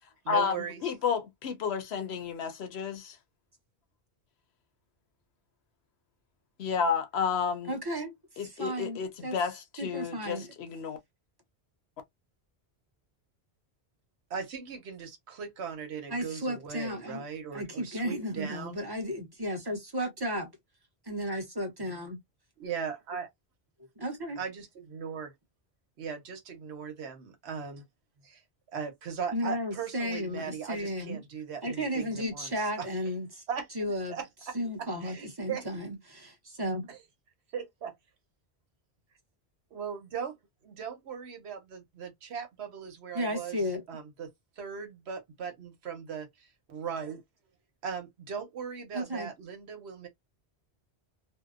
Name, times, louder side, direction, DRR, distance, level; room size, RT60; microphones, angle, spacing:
voice 1, 0.2-0.8 14.3-18.9 22.6-23.3 24.4-25.3 26.0-27.8 28.2-28.4 28.7-32.9 33.5-33.7 34.1-35.6 36.9-37.0 37.5-38.0 39.7-40.4 40.6-43.6 43.9-47.2 47.8-50.1, right 7 dB, 75° right, 1.0 m, -39 dB
voice 2, 0.8-3.2 6.6-7.7 8.4-11.0, left 6 dB, 75° left, 0.9 m, -31 dB
voice 3, 7.6-9.4 9.8-10.5 16.1-17.3 17.5-20.5 21.0-22.2 24.0-24.4 29.3-31.2 31.6-33.4 33.7-34.2 34.5-36.9 43.1-43.8 48.9-49.3, equal, 25° right, 0.7 m, -34 dB
2.7 x 2.0 x 2.3 m
omnidirectional pair, 1.1 m